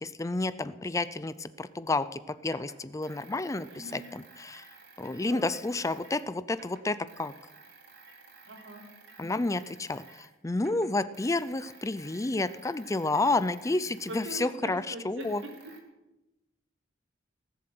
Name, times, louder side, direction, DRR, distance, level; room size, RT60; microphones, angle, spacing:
voice 1, 0.0-4.7 5.0-7.3 9.2-15.4, left 2 dB, 15° left, 15 dB, 0.4 m, -30 dB
sound 1, 1.3-1.4 2.4-6.3 6.5-10.3 10.6-15.8, right 4 dB, 60° right, 2.9 m, -54 dB
voice 2, 3.7-4.0 5.3-5.5 8.5-8.9 14.1-15.5, right 1 dB, 85° right, 1 dB, 3.7 m, -42 dB
18.0 x 7.7 x 7.7 m, 0.98 s
head